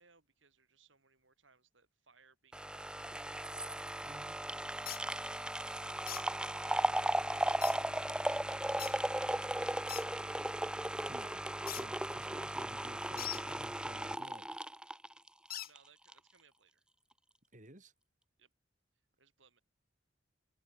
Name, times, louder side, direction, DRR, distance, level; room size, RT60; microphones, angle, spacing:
voice 1, 0.0-3.4 15.6-16.8 18.4-18.5 19.2-19.6, right 5 dB, 80° right, 7.3 m, -67 dB
sound 1, 2.5-15.8 16.1-16.2, right 1 dB, 5° right, 0.7 m, -36 dB
voice 2, 4.0-4.4 11.1-11.4 11.8-14.6 17.5-17.9, right 1 dB, 40° right, 5.4 m, -55 dB
sound 2, 4.9-5.0 6.1-6.2 7.6-7.8 8.8-8.9 9.9-10.1 11.7-11.8 13.2-13.4 15.5-15.7, left 13 dB, 50° left, 1.9 m, -41 dB
head